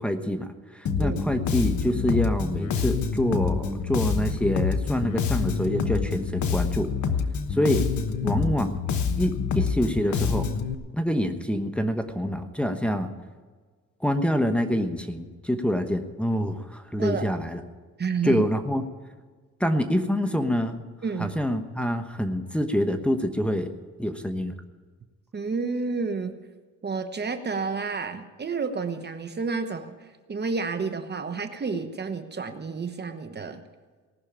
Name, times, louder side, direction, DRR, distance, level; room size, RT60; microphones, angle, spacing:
voice 1, 0.0-6.9 7.5-7.9 8.2-8.8 9.2-10.5 10.9-13.1 14.0-17.6 18.2-18.8 19.6-20.8 21.2-23.7 24.0-24.5, equal, 5° left, 5 dB, 1.1 m, -26 dB
Bass guitar, 0.9-10.7, left 6 dB, 70° left, 1.3 m, -27 dB
voice 2, 18.0-18.5 21.0-21.3 25.3-26.3 26.8-29.9 30.3-33.6, right 4 dB, 35° right, 8 dB, 1.1 m, -30 dB
19.0 x 6.4 x 8.7 m, 1.5 s
cardioid pair, 90°, 30 cm